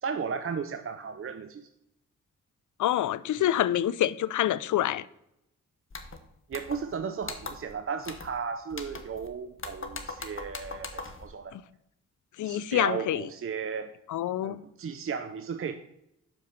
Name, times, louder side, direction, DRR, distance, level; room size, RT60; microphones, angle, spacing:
voice 1, 0.0-1.7 6.5-11.5 12.4-13.9 14.4-15.7, right 6 dB, 40° right, 0.6 m, -35 dB
voice 2, 2.8-5.0 11.5-11.6 12.4-13.2 14.1-14.6, left 12 dB, 60° left, 0.5 m, -27 dB
sound 1, 5.9-6.2 6.5-7.0 7.2-7.7 8.0-8.4 8.7-9.3 9.6-11.3, left 3 dB, 35° left, 1.2 m, -40 dB
7.1 x 4.9 x 6.4 m
supercardioid pair, 45°, 34 cm